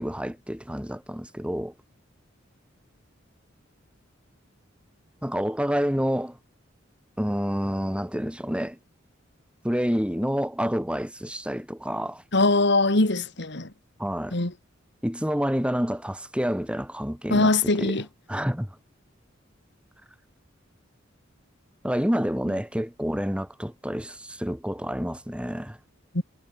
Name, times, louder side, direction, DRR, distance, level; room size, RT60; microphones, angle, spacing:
voice 1, 0.0-1.7 5.2-6.4 7.2-8.8 9.6-12.2 14.0-14.4 15.0-18.0 18.3-18.7 21.8-25.8, equal, 5° right, 5.7 m, -28 dB
voice 2, 12.3-13.7 14.3-14.5 17.3-18.1 26.1-26.2, left 2 dB, 65° left, 2.6 m, -22 dB
head